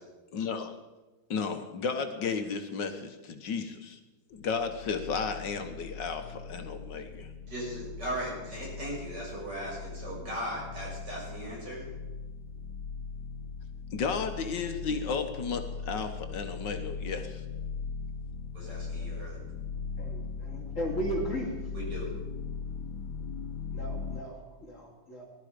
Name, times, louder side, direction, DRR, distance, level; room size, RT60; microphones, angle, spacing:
voice 1, 0.3-0.7 1.3-4.0 4.3-7.3 13.9-17.4, left 5 dB, 70° left, 7 dB, 1.8 m, -33 dB
sound 1, 4.3-24.2, left 5 dB, 90° left, 1.5 m, -39 dB
voice 2, 7.5-11.8 18.5-19.5 21.7-22.1, equal, 60° right, -5 dB, 7.6 m, -38 dB
voice 3, 20.0-21.5 23.7-25.3, right 1 dB, 40° left, -2 dB, 3.6 m, -36 dB
19.5 x 12.0 x 5.1 m, 1.2 s
omnidirectional pair, 2.0 m